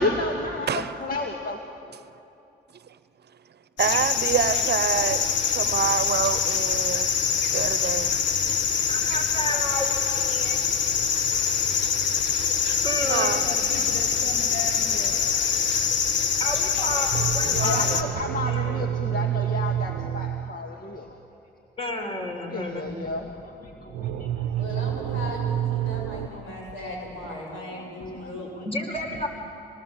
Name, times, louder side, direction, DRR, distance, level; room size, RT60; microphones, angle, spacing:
voice 1, 0.0-1.6 13.4-15.2 16.8-16.9 17.6-21.1 22.5-24.5 24.8-25.2 25.7-26.5 27.7-28.7 29.1-29.2, left 2 dB, 45° left, 2.2 m, -33 dB
sound 1, 3.8-18.0, left 7 dB, 65° left, 1.6 m, -24 dB
voice 2, 3.8-5.2 5.5-7.2 7.5-8.2 13.1-13.4, right 8 dB, 55° right, 0.9 m, -26 dB
voice 3, 8.9-10.6 12.8-13.5 16.4-18.0 18.4-19.3 21.8-22.9 28.6-29.3, left 1 dB, 30° left, 4.9 m, -31 dB
sound 2, 17.1-20.6 23.9-26.3, right 11 dB, 85° right, 0.8 m, -28 dB
voice 4, 24.5-28.5, left 1 dB, 85° left, 7.5 m, -37 dB
26.5 x 19.5 x 7.4 m
supercardioid pair, 60°, 20 cm